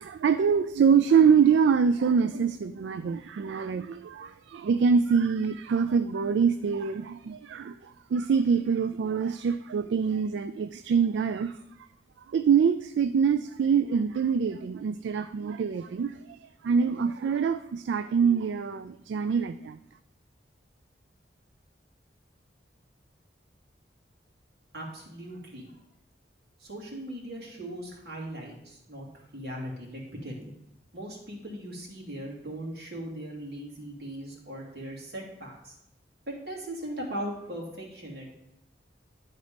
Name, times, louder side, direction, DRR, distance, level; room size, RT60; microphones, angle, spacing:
voice 1, 0.0-11.6 12.3-19.8, right 6 dB, 75° right, 0.3 m, -25 dB
voice 2, 24.7-25.7 26.6-30.5 30.9-35.7 36.3-38.3, right 1 dB, 55° right, 2.4 m, -39 dB
10.5 x 4.1 x 5.0 m
head